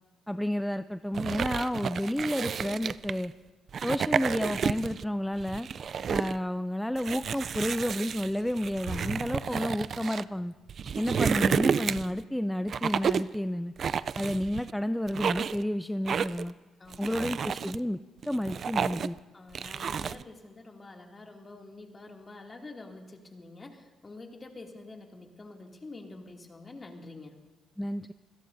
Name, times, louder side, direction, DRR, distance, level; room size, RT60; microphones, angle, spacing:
voice 1, 0.3-3.3 3.8-5.7 6.1-10.5 11.0-13.7 14.2-16.5 17.0-19.2 27.8-28.1, equal, 5° left, 11 dB, 0.4 m, -31 dB
sound 1, 1.1-3.2 3.7-5.0 5.4-6.4 7.0-10.2 10.7-12.2 12.7-13.3 13.8-14.7 15.1-15.6 16.1-16.5 16.9-17.8 18.2-19.2 19.5-20.2, right 7 dB, 55° right, 0.4 m, -31 dB
sound 2, 8.9-12.3, right 3 dB, 70° right, 6.7 m, -45 dB
voice 2, 16.8-17.3 19.3-27.3, left 2 dB, 30° left, 1 dB, 2.6 m, -47 dB
25.5 x 17.5 x 2.7 m, 1.3 s
cardioid pair, 90°, 0 cm